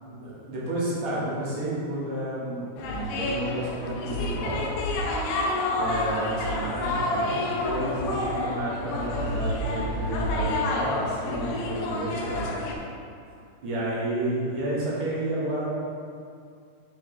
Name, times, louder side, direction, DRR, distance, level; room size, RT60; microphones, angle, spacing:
voice 1, 0.0-4.6 5.8-12.5 13.6-15.7, right 1 dB, 60° right, -7 dB, 1.3 m, -31 dB
sound 1, 2.8-12.8, left 2 dB, 80° left, 2.5 m, -29 dB
7.2 x 5.0 x 3.7 m, 2.4 s
omnidirectional pair, 4.5 m